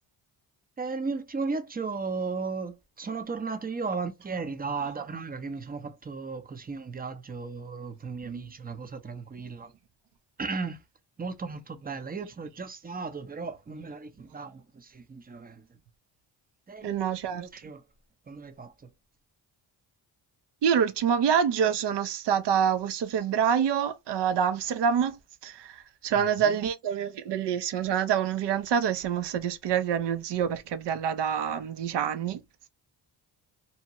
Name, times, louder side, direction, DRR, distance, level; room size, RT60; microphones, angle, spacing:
voice 1, 0.8-9.7 10.4-10.8 11.2-15.7 16.7-16.9 17.3-17.8 18.3-18.9 26.1-26.6, right 4 dB, 20° right, 0.6 m, -35 dB
voice 2, 16.8-17.5 20.6-32.4, right 8 dB, 60° right, 0.6 m, -27 dB
2.8 x 2.2 x 2.8 m
supercardioid pair, 60°, 48 cm